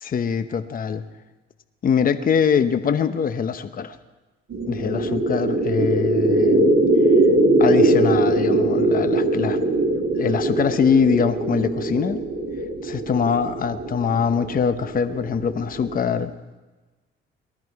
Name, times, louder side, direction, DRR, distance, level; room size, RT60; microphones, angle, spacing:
voice 1, 0.0-1.0 1.8-4.0 4.7-6.7 7.6-9.6 10.1-12.2 12.8-16.3, left 6 dB, 45° left, 10 dB, 0.9 m, -23 dB
sound 1, 4.5-16.0, right 2 dB, 55° right, 3.5 m, -21 dB
19.5 x 13.0 x 4.7 m, 1.2 s
cardioid pair, 90°, 20 cm